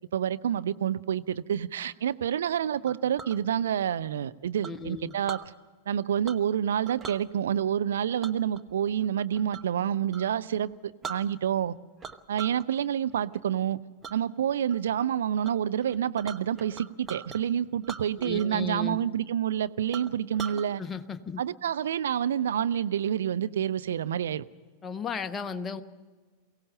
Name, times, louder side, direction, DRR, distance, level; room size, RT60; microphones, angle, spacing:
voice 1, 0.1-5.4 5.9-11.8 12.3-13.8 14.1-20.8 21.4-24.4, right 9 dB, 65° right, 12 dB, 0.6 m, -28 dB
Chink clink, 2.9-3.4 4.6-5.5 6.2-6.6 6.9-7.2 8.2-9.8 10.1-10.3 10.7-10.8 11.0-11.7 12.0-12.7 13.0-13.4 14.0-14.2 14.7-15.1 15.4-15.5 15.8-17.4 17.8-18.6 18.9-19.0 19.5-19.6 19.9-20.7, right 6 dB, 20° right, 1.0 m, -41 dB
voice 2, 4.6-5.1 18.2-19.0 20.8-21.4 24.8-25.8, left 5 dB, 20° left, 8 dB, 1.0 m, -35 dB
23.0 x 17.0 x 6.7 m, 1.4 s
figure-of-eight pair, 90°, 0 cm